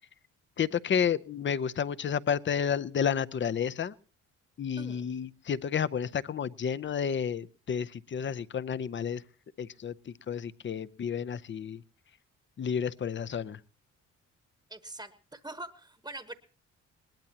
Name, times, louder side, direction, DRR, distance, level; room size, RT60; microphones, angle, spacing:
voice 1, 0.6-3.9 4.6-9.2 9.6-11.8 12.6-13.6, left 7 dB, 40° left, 17 dB, 0.7 m, -31 dB
voice 2, 4.8-5.1 14.7-16.3, right 2 dB, 15° right, 10 dB, 1.1 m, -43 dB
21.0 x 19.0 x 2.9 m, 0.38 s
cardioid pair, 90°, 30 cm